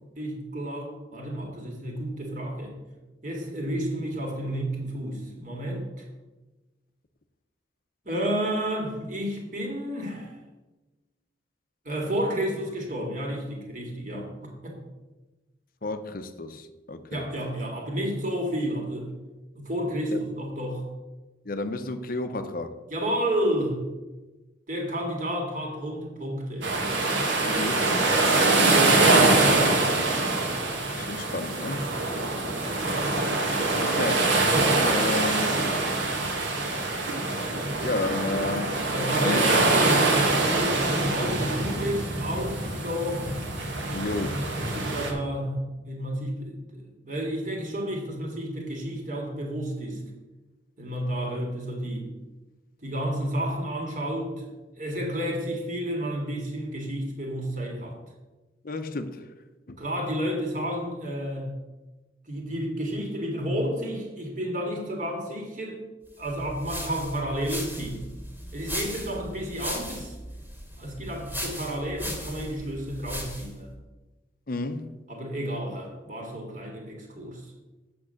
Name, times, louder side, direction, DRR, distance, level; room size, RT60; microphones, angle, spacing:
voice 1, 0.2-2.8 3.2-6.0 8.1-10.4 11.9-14.8 17.1-19.1 19.5-20.9 22.9-23.8 24.7-26.7 29.4-29.8 32.5-33.1 38.9-43.3 44.6-50.0 50.8-52.1 52.8-54.5 54.8-58.0 59.8-61.5 62.3-65.8 66.2-68.1 68.5-70.1 70.8-73.7 75.1-77.5, equal, 40° right, 2.1 m, -31 dB
voice 2, 15.8-17.3 20.1-20.2 21.4-22.8 27.4-28.4 30.9-31.9 33.8-34.4 34.8-35.7 37.8-38.8 39.2-39.4 43.9-44.5 58.6-59.3 59.7-59.8 74.5-75.0, left 2 dB, 50° left, 0.6 m, -32 dB
sound 1, 26.6-45.1, right 2 dB, 75° right, 1.7 m, -24 dB
sound 2, 66.2-73.6, equal, 10° right, 2.1 m, -37 dB
8.5 x 6.0 x 6.5 m
head